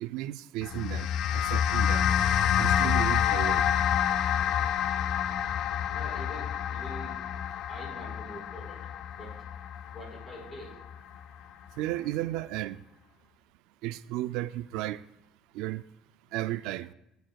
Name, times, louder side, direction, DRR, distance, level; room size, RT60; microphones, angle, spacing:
voice 1, 0.0-2.1 2.6-3.6 11.8-12.8 13.8-15.0 15.5-15.8 16.3-16.9, right 15 dB, 80° right, 0.3 m, -34 dB
sound 1, 0.6-11.2, left 9 dB, 60° left, 0.4 m, -28 dB
voice 2, 5.9-7.2 7.7-8.9 9.1-9.4 9.9-10.8, equal, 25° left, 4.3 m, -45 dB
19.0 x 9.3 x 2.3 m
cardioid pair, 150°, 0 cm